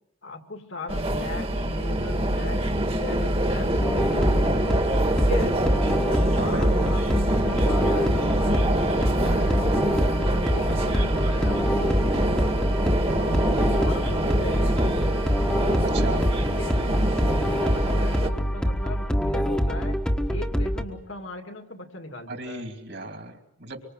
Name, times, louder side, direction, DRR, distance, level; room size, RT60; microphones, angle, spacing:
voice 1, 0.2-4.6 5.1-5.6 6.2-9.7 10.3-12.0 13.3-14.9 16.4-16.8 17.2-20.0 20.3-22.7, left 2 dB, 60° left, 6 dB, 2.4 m, -38 dB
sound 1, 0.9-18.3, right 1 dB, 25° right, 1.8 m, -25 dB
sound 2, 3.8-20.8, equal, 5° left, 1.4 m, -25 dB
voice 2, 6.4-6.7 13.2-13.3 15.9-16.3 22.3-23.8, right 2 dB, 55° right, 4 dB, 2.9 m, -35 dB
25.0 x 24.5 x 7.8 m, 0.78 s
head